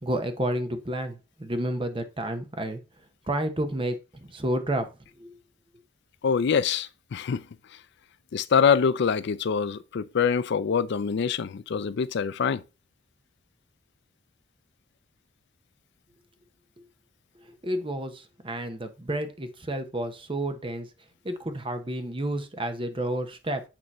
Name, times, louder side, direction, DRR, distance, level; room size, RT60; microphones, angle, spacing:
voice 1, 0.0-2.8 3.3-4.0 4.3-4.9 5.2-5.3 17.6-20.9 21.2-23.6, right 1 dB, 25° right, 0.9 m, -30 dB
voice 2, 6.2-7.4 8.3-12.6, left 6 dB, 60° left, 0.4 m, -25 dB
8.7 x 3.0 x 5.4 m
head